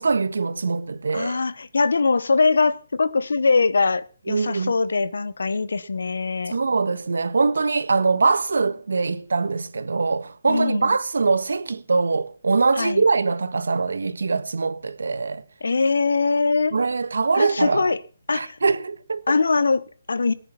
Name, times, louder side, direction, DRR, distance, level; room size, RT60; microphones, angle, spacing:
voice 1, 0.0-1.4 4.3-4.7 6.5-15.4 16.7-17.9 18.3-19.4, right 4 dB, 90° right, 1.5 m, -23 dB
voice 2, 1.1-6.6 10.5-11.0 12.8-13.0 15.6-16.8 17.3-18.0 18.3-18.6 19.3-20.3, left 4 dB, 85° left, 1.1 m, -22 dB
19.0 x 9.9 x 5.7 m
hypercardioid pair, 180°, 0 cm